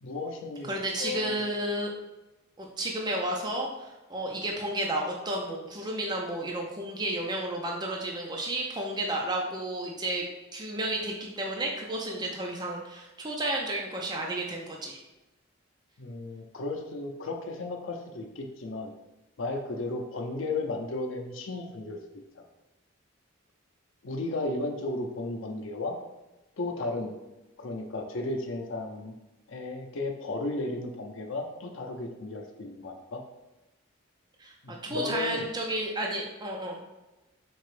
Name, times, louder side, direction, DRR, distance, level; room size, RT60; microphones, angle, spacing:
voice 1, 0.0-0.7 1.0-1.5 16.0-18.9 19.4-22.0 22.4-22.5 24.0-26.0 26.6-27.1 27.6-29.1 29.5-33.2 34.6-35.4, left 2 dB, 70° left, 3 dB, 0.6 m, -34 dB
voice 2, 0.6-1.9 2.6-10.2 10.5-15.0 34.4-36.8, right 1 dB, 20° right, -1 dB, 0.4 m, -32 dB
4.4 x 2.9 x 3.2 m, 1.0 s
head